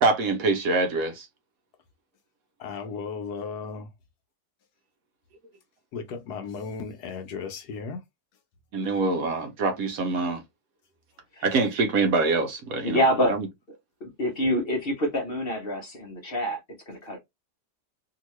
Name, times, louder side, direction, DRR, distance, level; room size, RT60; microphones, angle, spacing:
voice 1, 0.0-1.3 8.7-10.4 11.4-13.0 13.3-13.5, right 3 dB, 65° right, 1.1 m, -24 dB
voice 2, 2.6-3.9 5.9-8.0, left 5 dB, 75° left, 1.2 m, -35 dB
voice 3, 12.8-13.3 14.0-16.6 16.9-17.2, equal, 45° left, 0.8 m, -26 dB
2.9 x 2.8 x 3.0 m
omnidirectional pair, 1.8 m